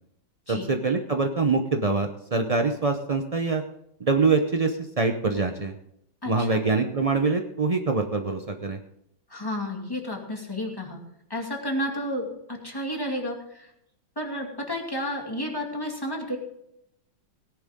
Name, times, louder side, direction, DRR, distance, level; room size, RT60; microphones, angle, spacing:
voice 1, 0.5-3.6 4.0-5.7 6.2-8.8, right 4 dB, 55° right, 5 dB, 0.4 m, -24 dB
voice 2, 6.2-6.6 9.3-11.0 11.3-13.7 14.2-16.4, left 1 dB, 10° left, 0 dB, 2.5 m, -31 dB
17.5 x 10.5 x 3.7 m, 0.77 s
omnidirectional pair, 2.0 m